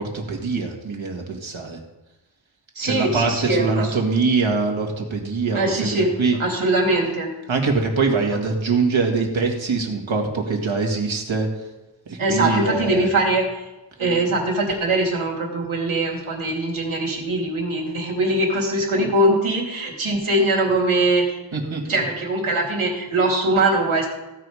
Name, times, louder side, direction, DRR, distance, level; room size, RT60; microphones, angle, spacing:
voice 1, 0.0-1.8 2.8-6.4 7.5-11.5 12.1-13.1 21.5-21.8, right 4 dB, 75° right, 2 dB, 2.1 m, -23 dB
voice 2, 2.7-3.9 5.5-6.1 6.4-7.3 12.2-13.6 14.0-21.4 21.6-24.1, right 2 dB, 90° right, -1 dB, 2.8 m, -22 dB
15.5 x 5.6 x 4.9 m, 1.1 s
wide cardioid pair, 75°, 47 cm